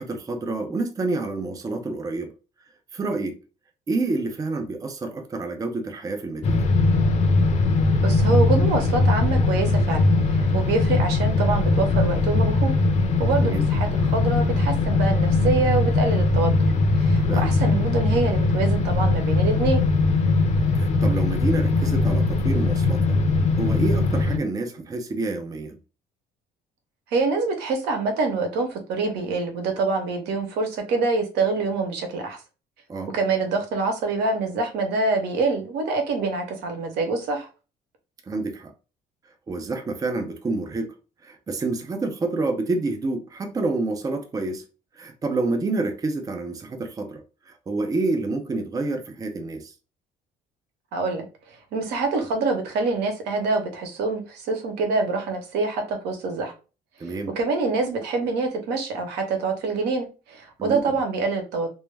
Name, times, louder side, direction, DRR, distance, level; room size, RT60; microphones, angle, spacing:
voice 1, 0.0-2.3 2.9-3.4 3.9-6.7 13.4-13.7 17.3-17.5 20.8-23.2 23.6-25.8 32.9-33.1 38.3-38.7 39.5-40.9 41.2-44.6 45.0-49.7 57.0-57.3 60.6-60.9, right 3 dB, 20° right, 0.4 m, -28 dB
sound 1, 6.4-24.4, left 3 dB, 40° left, 0.5 m, -20 dB
voice 2, 8.0-12.7 13.2-16.5 16.9-19.8 27.1-32.4 33.1-37.5 50.9-56.5 57.0-61.7, right 3 dB, 80° right, 0.8 m, -25 dB
2.1 x 2.1 x 3.2 m
cardioid pair, 110°, 17 cm